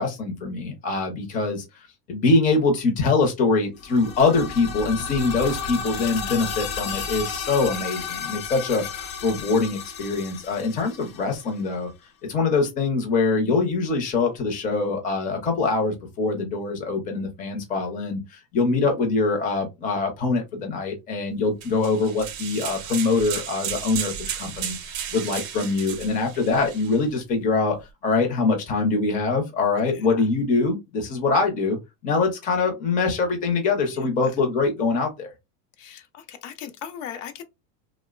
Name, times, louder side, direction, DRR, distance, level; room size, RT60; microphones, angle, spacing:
voice 1, 0.0-1.6 2.1-11.9 12.3-27.8 28.0-31.8 32.0-35.3, left 3 dB, 20° left, 0.5 m, -23 dB
sound 1, 3.8-11.6, left 6 dB, 85° left, 0.9 m, -33 dB
sound 2, 21.6-27.0, right 9 dB, 45° right, 0.6 m, -34 dB
voice 2, 29.8-30.2 33.9-34.1 35.8-37.4, left 8 dB, 70° left, 0.6 m, -39 dB
2.9 x 2.0 x 2.3 m
supercardioid pair, 155°, 41 cm